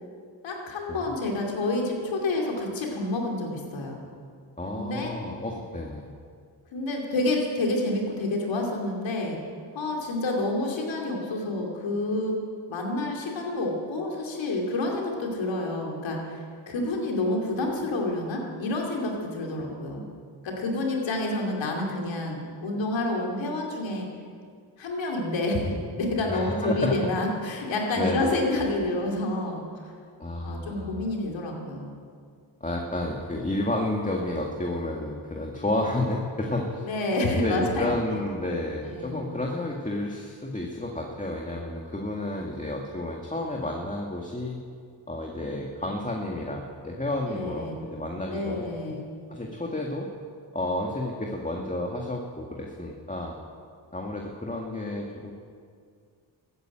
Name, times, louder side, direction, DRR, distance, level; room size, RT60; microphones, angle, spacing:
voice 1, 0.4-4.0 4.7-5.1 6.7-9.4 9.7-12.4 12.7-20.0 20.4-24.1 24.8-29.6 30.4-31.9 36.8-37.9 38.8-39.3 47.3-47.8 48.3-49.1, left 2 dB, 90° left, 0 dB, 2.7 m, -29 dB
voice 2, 4.6-6.1 26.3-27.0 28.0-28.3 30.2-31.0 32.6-36.9 37.4-44.6 45.1-49.0 49.3-50.1 50.5-53.3 53.9-55.3, left 1 dB, 15° left, 0 dB, 1.9 m, -31 dB
13.5 x 9.5 x 9.0 m, 2.2 s
cardioid pair, 50°, 44 cm